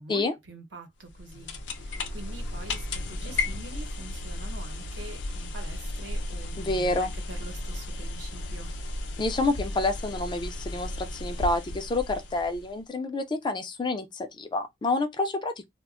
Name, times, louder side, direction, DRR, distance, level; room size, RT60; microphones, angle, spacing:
voice 1, 0.0-8.7, right 2 dB, 85° right, 0.8 m, -45 dB
sound 1, 1.0-12.8, left 2 dB, 85° left, 0.5 m, -34 dB
voice 2, 6.7-7.1 9.2-15.5, left 2 dB, 25° left, 0.4 m, -28 dB
2.2 x 2.0 x 3.6 m
head